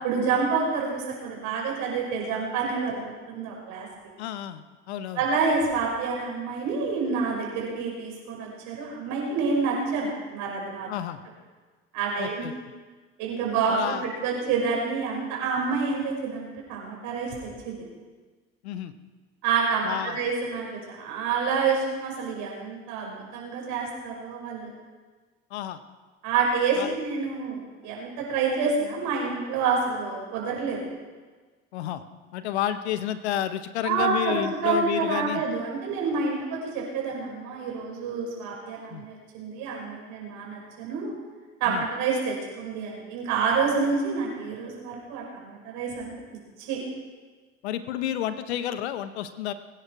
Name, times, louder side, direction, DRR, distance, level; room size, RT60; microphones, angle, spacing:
voice 1, 0.0-3.0 3.3-3.9 5.2-10.9 11.9-12.5 13.2-17.4 17.6-17.7 19.4-20.7 21.0-24.7 26.2-30.8 33.8-41.1 41.6-46.1 46.6-46.8, right 5 dB, 70° right, -2 dB, 6.0 m, -28 dB
voice 2, 4.2-5.2 10.9-11.2 12.2-12.5 13.7-14.0 18.6-18.9 19.8-20.2 25.5-25.8 26.8-26.9 31.7-32.0 32.3-35.4 38.9-39.0 41.7-41.8 47.6-49.5, left 11 dB, 85° left, 11 dB, 1.0 m, -30 dB
22.5 x 10.0 x 4.8 m, 1.4 s
hypercardioid pair, 65°, 32 cm